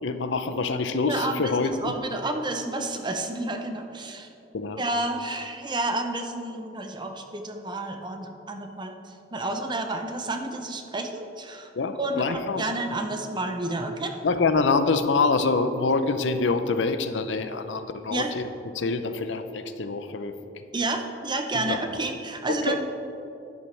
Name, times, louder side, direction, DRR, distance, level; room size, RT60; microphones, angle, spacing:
voice 1, 0.0-2.0 4.5-4.8 11.8-12.6 14.2-18.5 18.7-20.6 21.5-21.8 22.5-22.8, left 4 dB, 70° left, 10 dB, 0.6 m, -26 dB
voice 2, 1.0-4.3 4.8-9.0 9.3-11.7 12.0-14.1 18.1-18.3 20.7-22.8, right 2 dB, 25° right, 5 dB, 0.7 m, -30 dB
10.5 x 10.5 x 3.3 m, 2.8 s
head